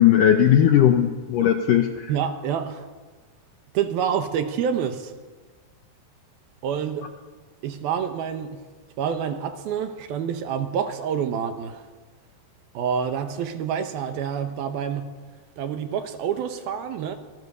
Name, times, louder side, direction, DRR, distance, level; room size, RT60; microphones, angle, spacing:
voice 1, 0.0-2.1, left 10 dB, 75° left, 6 dB, 2.0 m, -18 dB
voice 2, 2.1-2.9 3.7-5.1 6.6-7.1 7.6-8.6 9.0-11.9 12.7-15.1 15.6-17.2, right 8 dB, 70° right, 7 dB, 2.9 m, -27 dB
26.5 x 19.0 x 6.9 m, 1.4 s
omnidirectional pair, 5.0 m